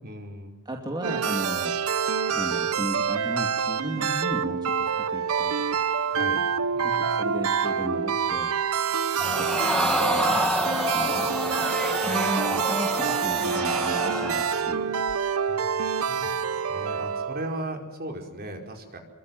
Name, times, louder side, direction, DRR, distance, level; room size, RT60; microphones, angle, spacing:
voice 1, 0.0-0.6 5.9-6.4 6.7-7.5 9.1-9.4 12.0-12.6 15.4-19.0, right 1 dB, 45° right, 3 dB, 5.0 m, -38 dB
voice 2, 0.7-1.7 2.3-5.9 6.8-8.6 9.3-11.6 12.0-15.0, right 1 dB, 20° right, 1 dB, 2.6 m, -35 dB
sound 1, 1.0-17.6, right 6 dB, 70° right, 1.0 m, -27 dB
Crowd, 9.2-14.7 15.1-15.2, left 1 dB, 5° left, 2.1 m, -28 dB
27.5 x 23.5 x 7.9 m, 1.1 s
head